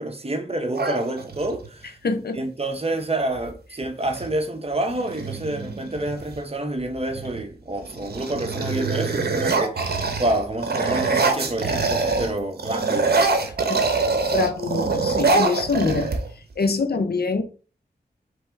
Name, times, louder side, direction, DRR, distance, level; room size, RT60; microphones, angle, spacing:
voice 1, 0.0-2.0 2.3-13.2, right 1 dB, 35° right, 1.0 m, -28 dB
sound 1, 0.7-1.7 3.4-3.5 3.8-4.3 4.9-6.4 7.0-7.4 7.8-12.3 12.6-16.5, right 3 dB, 65° right, 0.9 m, -24 dB
voice 2, 2.0-2.4 13.7-13.8 14.3-16.1 16.6-17.4, left 4 dB, 65° left, 0.7 m, -24 dB
3.5 x 3.4 x 4.5 m
cardioid pair, 45°, 18 cm